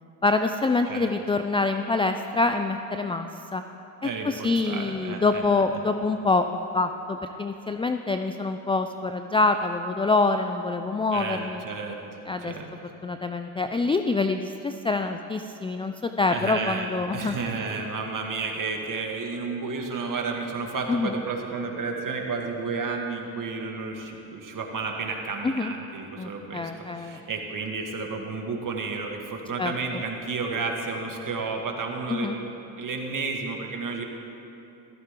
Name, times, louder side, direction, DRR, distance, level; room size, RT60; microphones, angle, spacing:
voice 1, 0.2-3.3 3.5-3.6 4.0-6.5 6.7-11.6 12.3-12.5 13.0-17.4 20.9-21.2 25.4-25.7 26.2-27.2 29.6-30.0 32.1-32.4, left 3 dB, 10° left, 7 dB, 0.4 m, -26 dB
voice 2, 4.0-5.9 11.1-12.0 12.4-12.7 16.3-34.1, right 4 dB, 40° right, 2 dB, 2.1 m, -32 dB
14.5 x 14.0 x 3.8 m, 3.0 s
supercardioid pair, 70°, 49 cm